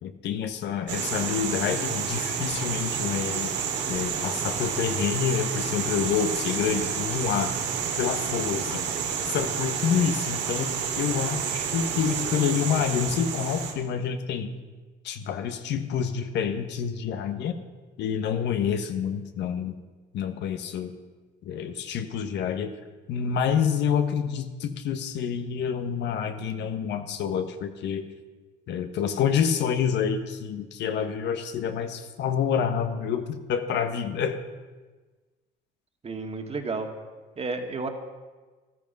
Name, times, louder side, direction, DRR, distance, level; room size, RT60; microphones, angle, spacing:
voice 1, 0.0-3.5 3.9-7.6 8.0-8.8 9.2-14.5 15.0-17.6 18.0-19.8 20.1-20.9 21.4-22.7 23.1-28.1 28.7-34.4, left 7 dB, 65° left, 8 dB, 1.3 m, -28 dB
sound 1, 0.9-13.7, right 7 dB, 70° right, 2.4 m, -30 dB
voice 2, 36.0-36.9 37.4-37.9, right 3 dB, 35° right, 4 dB, 2.0 m, -31 dB
13.5 x 13.0 x 5.4 m, 1.3 s
supercardioid pair, 85°, 19 cm